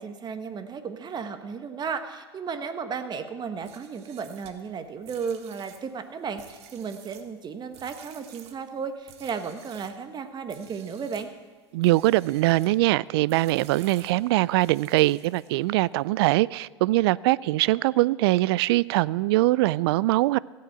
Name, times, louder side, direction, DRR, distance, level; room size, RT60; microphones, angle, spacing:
voice 1, 0.0-11.3, right 6 dB, 30° right, 1.4 m, -34 dB
sound 1, 3.5-10.0 10.5-11.3 11.8-12.8 13.3-15.7, right 9 dB, 50° right, 1.5 m, -51 dB
voice 2, 11.7-20.4, right 18 dB, 65° right, 0.4 m, -22 dB
16.5 x 7.8 x 7.9 m
hypercardioid pair, 90°, 14 cm